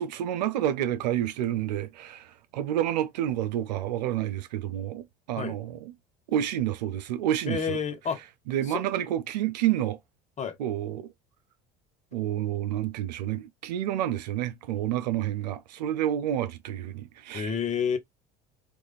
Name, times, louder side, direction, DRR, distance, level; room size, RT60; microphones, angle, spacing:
voice 1, 0.0-5.9 6.3-7.8 8.5-10.0 10.6-11.1 12.1-17.5, right 11 dB, 90° right, 0.5 m, -29 dB
voice 2, 7.5-8.2 8.7-8.8 10.4-10.6 17.3-18.0, left 6 dB, 35° left, 0.9 m, -29 dB
3.4 x 2.4 x 3.3 m
hypercardioid pair, 80°, 21 cm